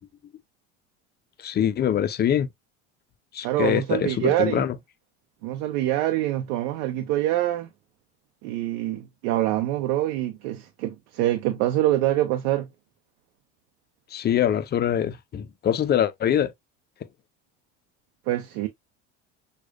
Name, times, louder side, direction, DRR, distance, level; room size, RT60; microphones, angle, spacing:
voice 1, 1.4-2.5 3.3-4.7 14.1-16.5, left 9 dB, 30° left, 0.5 m, -24 dB
voice 2, 3.4-4.6 5.4-7.7 8.4-12.7 18.3-18.7, right 14 dB, 70° right, 0.7 m, -25 dB
6.1 x 2.4 x 2.3 m
hypercardioid pair, 80°, 37 cm